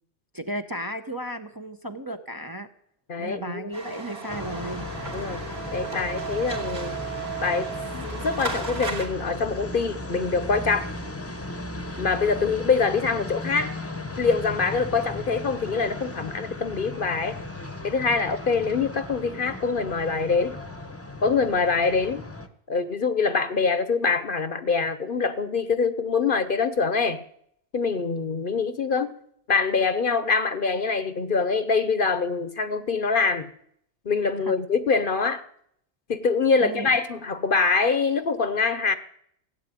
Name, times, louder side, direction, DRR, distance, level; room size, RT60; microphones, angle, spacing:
voice 1, 0.3-2.7 3.2-4.9 34.5-34.6 36.6-36.9, right 1 dB, 20° right, 6 dB, 0.8 m, -34 dB
voice 2, 3.1-3.7 5.1-5.4 5.7-7.0 7.4-10.9 12.0-13.7 14.2-17.4 17.8-20.6 21.2-22.2 22.7-27.2 27.7-29.1 29.5-33.5 34.0-35.4 36.1-38.9, left 4 dB, 50° left, 12 dB, 1.0 m, -24 dB
sound 1, 3.7-9.1, right 4 dB, 60° right, 2.9 m, -34 dB
sound 2, 4.3-22.5, left 2 dB, 15° left, 1.0 m, -36 dB
16.5 x 8.6 x 9.0 m, 0.70 s
omnidirectional pair, 1.2 m